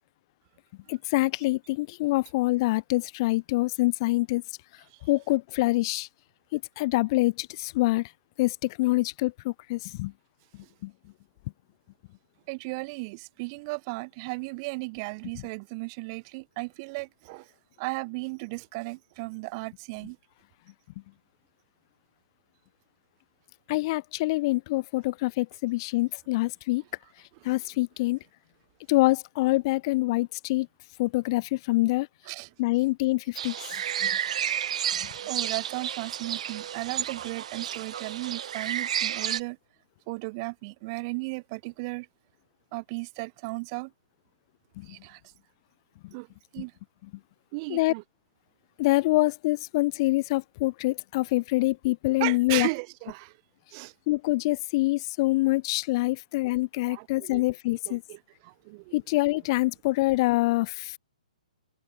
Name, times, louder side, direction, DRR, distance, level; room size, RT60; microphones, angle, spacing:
voice 1, 0.9-4.4 5.1-6.1 6.5-8.1 8.4-10.1 10.8-10.9 23.7-26.8 27.4-28.2 28.9-30.7 31.0-32.1 32.6-34.1 44.8-44.9 47.7-47.9 48.8-52.7 54.1-58.0 58.9-61.0, left 20 dB, 35° left, 4.6 m, -25 dB
voice 2, 12.5-17.5 17.8-20.2 32.2-32.5 35.3-39.6 40.1-42.1 42.7-43.9 44.8-45.2 46.1-46.3 46.5-46.7 47.5-48.0 52.2-53.4 53.7-53.9 56.9-57.4 57.7-58.9, right 28 dB, 30° right, 6.6 m, -35 dB
sound 1, 33.4-39.4, right 9 dB, 55° right, 4.9 m, -31 dB
hypercardioid pair, 145°, 4 cm